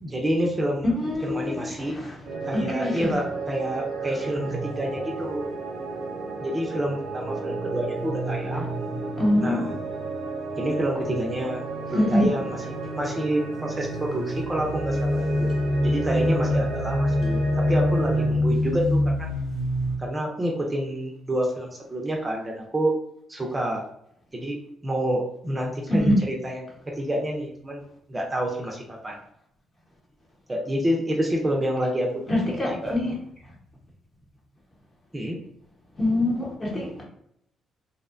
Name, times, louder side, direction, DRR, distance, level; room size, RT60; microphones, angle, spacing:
voice 1, 0.0-0.9 1.2-2.0 2.4-5.5 6.4-8.7 9.4-9.7 10.6-11.6 11.9-12.6 13.0-15.5 15.8-17.4 17.7-19.3 20.0-22.9 23.3-23.8 24.3-24.6 24.8-26.7 27.0-27.8 28.1-29.2 30.5-32.9 35.1-35.4, equal, 20° right, 0.5 m, -28 dB
voice 2, 0.8-2.1 2.5-3.1 9.2-9.7 11.9-12.3 25.9-26.2 32.3-33.1 36.0-37.0, left 1 dB, 30° left, 0.9 m, -24 dB
sound 1, 2.3-18.3, right 3 dB, 85° right, 0.6 m, -33 dB
sound 2, 4.3-5.3 6.8-11.4 11.7-12.2 13.7-20.0, left 1 dB, 70° left, 0.9 m, -27 dB
2.6 x 2.1 x 2.5 m
cardioid pair, 90°, 0 cm